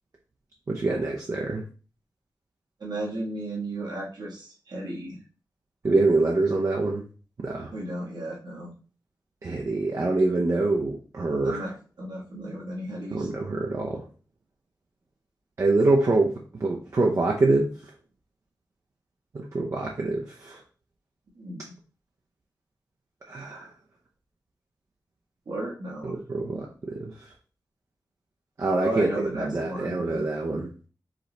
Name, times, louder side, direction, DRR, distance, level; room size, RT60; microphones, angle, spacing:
voice 1, 0.7-1.6 5.8-7.0 7.4-7.7 9.4-11.6 13.1-14.0 15.6-17.7 19.3-20.6 23.3-23.7 26.0-27.1 28.6-30.7, right 2 dB, 45° right, -1 dB, 0.7 m, -25 dB
voice 2, 2.8-5.2 7.7-8.7 11.4-13.3 21.3-21.7 25.4-26.4 28.8-30.3, right 1 dB, 75° right, -3 dB, 1.6 m, -34 dB
4.9 x 3.1 x 3.3 m, 0.38 s
wide cardioid pair, 135°, 7 cm